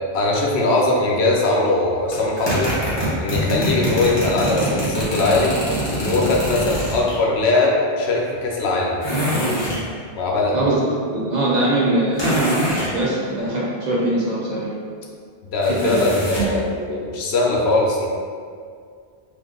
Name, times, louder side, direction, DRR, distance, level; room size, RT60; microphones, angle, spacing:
voice 1, 0.1-2.7 3.2-5.5 5.9-9.0 10.2-10.6 15.4-18.1, left 2 dB, 75° left, -2 dB, 0.8 m, -20 dB
sound 1, 2.1-7.2 9.0-9.8 12.2-12.9 15.6-16.6, right 1 dB, 25° left, 0.8 m, -24 dB
voice 2, 10.5-10.8 11.1-14.7 15.6-16.0, right 1 dB, 50° right, -6 dB, 0.6 m, -22 dB
2.6 x 2.5 x 3.6 m, 2.2 s
omnidirectional pair, 1.1 m